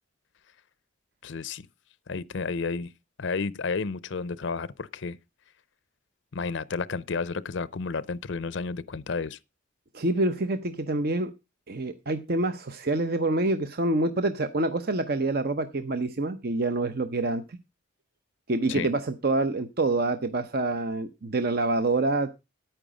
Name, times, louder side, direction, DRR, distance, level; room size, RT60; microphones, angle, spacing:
voice 1, 1.2-1.7 2.1-2.9 3.2-5.2 6.3-9.4 18.7-18.9, left 4 dB, 65° left, 0.6 m, -31 dB
voice 2, 9.9-11.3 11.7-17.6 18.5-22.3, right 2 dB, 50° right, 0.7 m, -26 dB
10.0 x 9.1 x 5.0 m
head